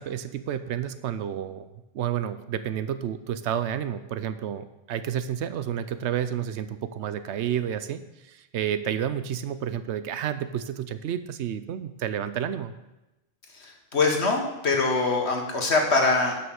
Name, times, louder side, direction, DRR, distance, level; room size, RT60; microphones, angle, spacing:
voice 1, 0.0-1.7 1.9-12.7, right 9 dB, 75° right, 12 dB, 0.9 m, -30 dB
voice 2, 13.5-16.4, left 3 dB, 65° left, 1 dB, 1.8 m, -24 dB
9.5 x 5.9 x 6.3 m, 0.99 s
omnidirectional pair, 1.2 m